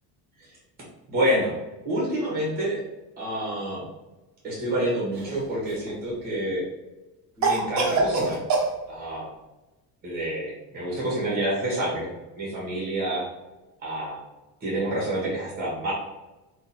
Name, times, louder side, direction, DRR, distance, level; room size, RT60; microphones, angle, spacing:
voice 1, 1.1-1.6 1.8-2.8 3.2-3.8 4.4-6.6 7.4-8.4 8.9-9.3 10.0-12.1 12.3-13.2 13.8-14.2 14.6-15.9, right 1 dB, 20° right, -4 dB, 1.4 m, -28 dB
Cough, 5.1-5.9 7.4-8.7, right 3 dB, 40° right, 0.9 m, -24 dB
3.7 x 2.6 x 4.2 m, 1.1 s
cardioid pair, 170°, 43 cm